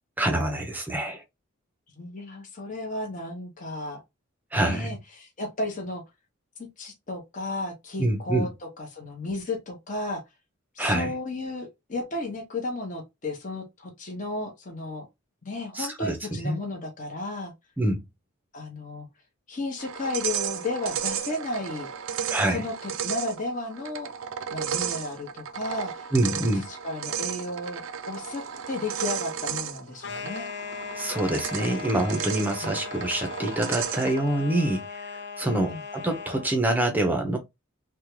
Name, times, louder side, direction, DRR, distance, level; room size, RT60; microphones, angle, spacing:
voice 1, 0.2-1.2 4.5-5.0 8.0-8.5 10.8-11.1 15.7-16.2 16.4-16.6 17.8-18.0 22.3-22.6 26.1-26.6 31.0-35.1 35.4-37.4, right 1 dB, 10° right, 0.6 m, -26 dB
voice 2, 2.0-4.0 4.5-6.0 6.8-10.2 10.7-15.1 15.4-17.5 18.5-19.1 19.5-21.9 22.5-24.1 24.5-30.5 32.6-32.7 35.5-35.8, left 2 dB, 35° left, 0.8 m, -33 dB
sound 1, 19.8-34.3, right 8 dB, 70° right, 0.5 m, -34 dB
sound 2, 30.0-36.5, left 5 dB, 50° left, 0.5 m, -38 dB
3.5 x 2.2 x 3.1 m
head